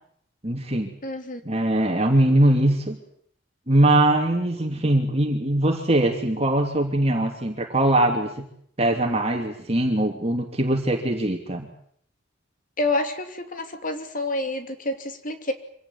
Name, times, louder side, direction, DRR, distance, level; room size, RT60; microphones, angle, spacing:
voice 1, 0.4-0.9 1.4-3.0 3.7-8.5 8.8-11.7, right 1 dB, 35° right, 3 dB, 3.0 m, -21 dB
voice 2, 1.0-1.4 12.8-15.5, left 2 dB, 45° left, 7 dB, 3.0 m, -28 dB
26.0 x 17.5 x 9.6 m, 0.66 s
head